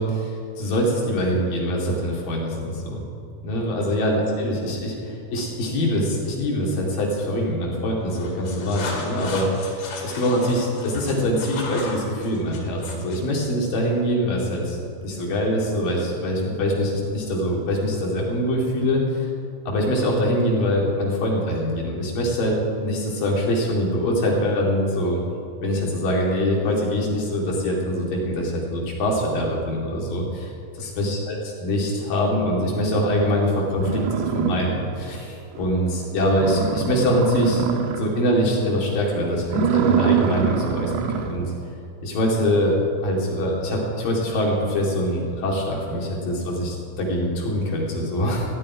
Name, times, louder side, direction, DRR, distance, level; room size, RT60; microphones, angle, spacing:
voice 1, 0.0-3.0 3.4-19.3 19.7-22.6 22.8-25.2 25.6-30.5 30.8-31.4 31.6-37.6 38.0-41.5 42.0-48.5, equal, 55° left, -2 dB, 4.1 m, -24 dB
sound 1, 8.0-13.3, left 3 dB, 90° left, 4.5 m, -36 dB
sound 2, 33.3-33.4 33.8-35.2 35.6-35.7 36.0-36.1 36.3-38.3 38.6-38.9 39.4-41.4, right 7 dB, 85° right, 3.1 m, -24 dB
15.0 x 8.7 x 9.7 m, 2.5 s
omnidirectional pair, 4.9 m